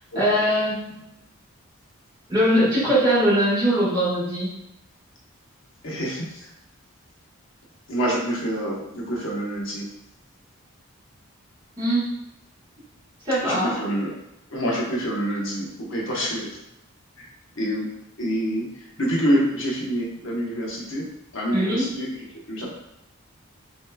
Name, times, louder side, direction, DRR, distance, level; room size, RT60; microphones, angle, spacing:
voice 1, 0.1-1.1 2.3-4.6 11.8-12.0 13.2-13.7 21.5-21.9, equal, 20° right, -11 dB, 1.5 m, -21 dB
voice 2, 5.8-6.5 7.9-9.8 13.4-14.1 14.5-16.5 17.2-17.3 17.6-17.9 18.2-18.7 19.0-21.0 21.3-22.1 22.5-22.7, equal, 65° left, -3 dB, 1.1 m, -26 dB
6.3 x 3.1 x 2.3 m, 0.84 s
head